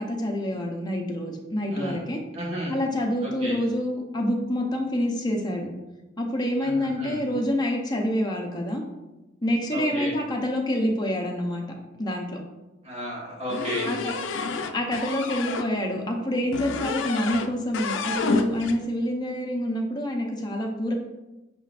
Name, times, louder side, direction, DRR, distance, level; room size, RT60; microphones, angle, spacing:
voice 1, 0.0-2.2 2.7-5.7 6.2-8.8 9.4-11.6 12.0-12.4 13.8-14.1 14.7-20.9, left 1 dB, 20° left, 1 dB, 0.6 m, -27 dB
voice 2, 2.3-2.8 3.2-3.6 6.6-7.2 9.7-10.1 12.8-13.9, equal, 35° right, -4 dB, 1.2 m, -33 dB
sound 1, 13.5-15.7 16.5-17.5 17.7-18.8, left 4 dB, 75° left, 0.4 m, -29 dB
5.5 x 3.7 x 2.4 m, 1.0 s
head